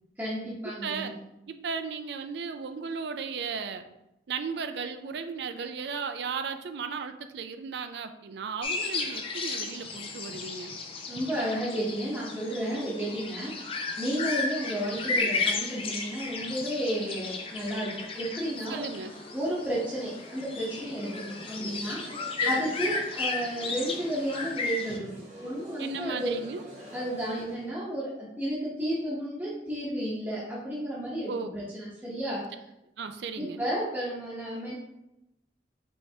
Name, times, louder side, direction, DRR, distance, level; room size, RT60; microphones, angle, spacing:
voice 1, 0.2-1.1 11.1-18.9 19.3-26.4 26.9-32.4 33.4-34.7, right 1 dB, 10° right, -8 dB, 0.9 m, -32 dB
voice 2, 1.5-3.8 4.3-10.7 18.7-19.1 22.4-22.8 25.8-26.6 31.3-31.5 33.0-33.6, right 5 dB, 65° right, 8 dB, 0.4 m, -35 dB
sound 1, 8.6-25.0, left 4 dB, 30° left, 0.4 m, -34 dB
sound 2, 18.5-27.7, right 1 dB, 40° right, 1.0 m, -49 dB
5.4 x 3.3 x 2.8 m, 0.88 s
head